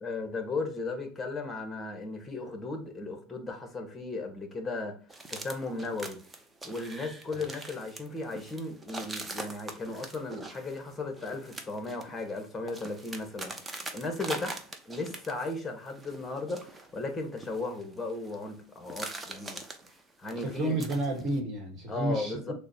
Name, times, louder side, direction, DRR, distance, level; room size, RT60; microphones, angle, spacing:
voice 1, 0.0-5.0 5.3-6.2 6.6-13.5 13.9-14.6 14.9-19.6 20.2-20.8 21.9-22.5, left 3 dB, 15° left, 1.1 m, -36 dB
sound 1, 5.1-15.6 15.9-18.5 18.8-21.4, right 2 dB, 15° right, 0.6 m, -43 dB
voice 2, 20.4-22.5, right 2 dB, 40° right, 1.2 m, -31 dB
6.2 x 2.1 x 2.7 m
supercardioid pair, 120°, 0 cm